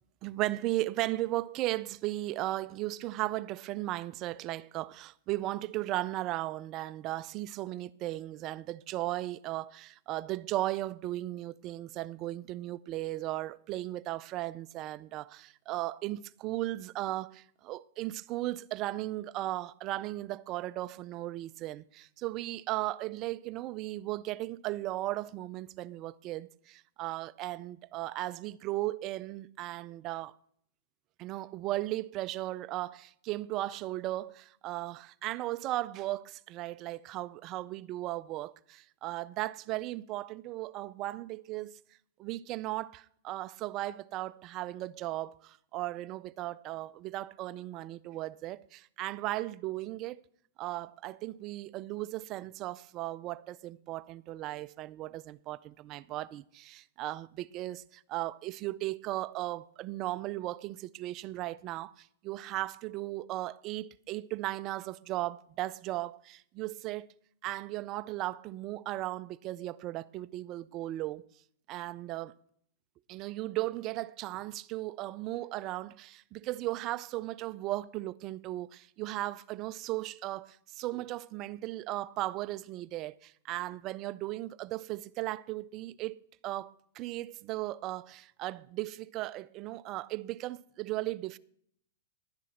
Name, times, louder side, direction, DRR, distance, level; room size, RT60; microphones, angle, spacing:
voice 1, 0.2-30.4 31.2-41.8 42.2-50.2 50.6-67.1 67.4-71.3 71.7-72.3 73.1-91.4, right 16 dB, 30° right, 0.3 m, -36 dB
11.0 x 10.5 x 4.4 m
supercardioid pair, 165°, 0 cm